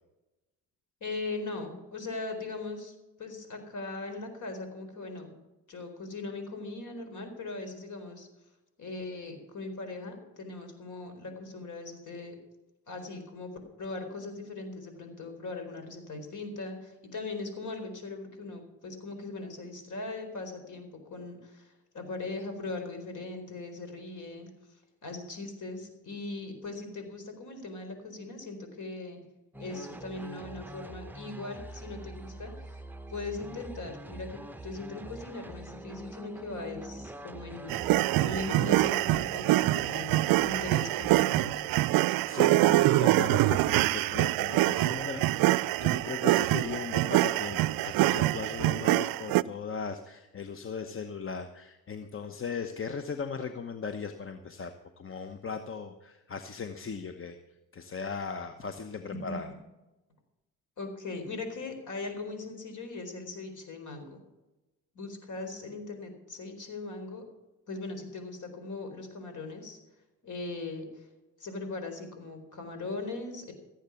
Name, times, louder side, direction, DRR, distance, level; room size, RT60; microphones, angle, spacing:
voice 1, 1.0-5.3 5.7-8.3 8.8-12.4 12.9-13.5 13.8-24.5 25.0-29.2 29.6-32.8 33.1-37.8 38.2-41.7 59.3-59.5 60.8-64.2 64.9-67.2 67.7-69.8 70.2-71.1 71.4-73.5, left 3 dB, 50° left, 7 dB, 4.3 m, -39 dB
sound 1, 29.5-41.4, right 1 dB, 5° right, 0.9 m, -44 dB
sound 2, 37.7-49.4, right 17 dB, 65° right, 0.5 m, -25 dB
voice 2, 42.0-57.4 57.7-59.5, left 5 dB, 35° left, 8 dB, 1.1 m, -38 dB
15.5 x 8.3 x 7.0 m, 1.0 s
supercardioid pair, 65°, 38 cm